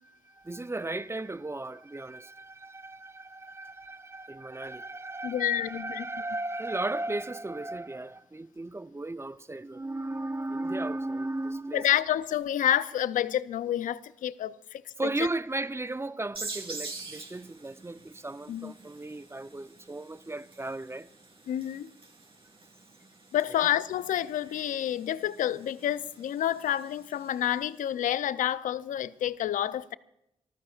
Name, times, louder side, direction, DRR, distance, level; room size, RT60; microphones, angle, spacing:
voice 1, 0.3-11.9 15.0-21.1 23.5-23.7, right 2 dB, 20° right, 0.7 m, -35 dB
voice 2, 5.2-6.0 11.7-15.1 18.5-18.7 21.5-21.9 23.3-29.9, left 11 dB, 75° left, 0.6 m, -29 dB
sound 1, 16.3-27.7, right 3 dB, 40° right, 4.0 m, -46 dB
28.0 x 15.0 x 2.5 m
supercardioid pair, 45°, 14 cm